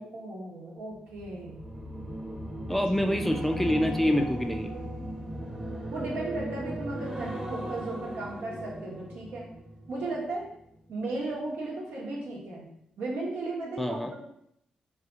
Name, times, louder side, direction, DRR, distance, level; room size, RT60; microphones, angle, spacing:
voice 1, 0.0-1.7 2.7-2.8 5.9-9.4 9.9-10.5 10.9-12.7 13.0-14.1, right 2 dB, 75° right, -4 dB, 1.0 m, -35 dB
sound 1, 1.1-10.5 10.8-11.1, right 1 dB, 20° right, 0.9 m, -37 dB
voice 2, 2.7-4.7 13.8-14.1, left 1 dB, 5° left, 4 dB, 0.4 m, -26 dB
2.7 x 2.4 x 3.7 m, 0.73 s
supercardioid pair, 50°, 3 cm